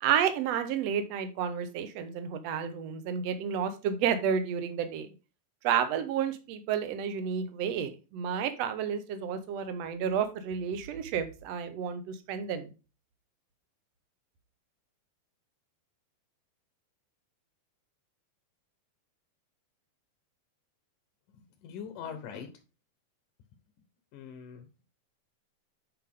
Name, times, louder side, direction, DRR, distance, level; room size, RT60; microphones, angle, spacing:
voice 1, 0.0-5.1 5.6-12.7, right 8 dB, 70° right, 9 dB, 1.6 m, -31 dB
voice 2, 21.3-22.5 24.1-24.7, left 7 dB, 70° left, 7 dB, 2.3 m, -42 dB
9.5 x 5.4 x 3.6 m, 0.30 s
omnidirectional pair, 4.4 m